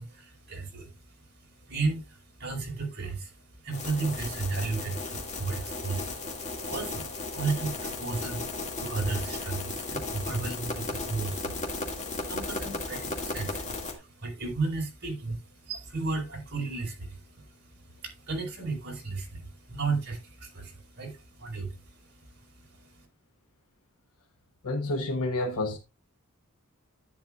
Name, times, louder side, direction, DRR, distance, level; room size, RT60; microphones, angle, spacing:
voice 1, 0.0-23.1, right 3 dB, 50° right, 4.5 m, -34 dB
sound 1, 3.7-13.9, left 3 dB, 35° left, 2.1 m, -35 dB
voice 2, 24.6-25.8, left 2 dB, 75° left, 1.1 m, -29 dB
10.5 x 9.2 x 2.4 m
head